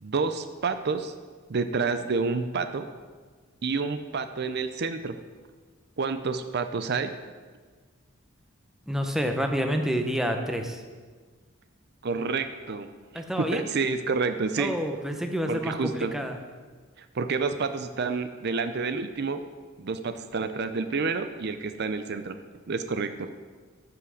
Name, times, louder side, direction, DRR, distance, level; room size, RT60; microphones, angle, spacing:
voice 1, 0.0-1.1 1.5-2.9 3.6-5.2 6.0-7.1 12.0-12.9 13.4-14.7 15.5-16.1 17.1-19.4 19.8-22.4 22.7-23.3, right 4 dB, 50° right, 9 dB, 0.5 m, -29 dB
voice 2, 8.9-10.8 13.1-13.6 14.6-16.4, equal, ahead, 4 dB, 0.8 m, -28 dB
13.5 x 5.7 x 6.4 m, 1.5 s
head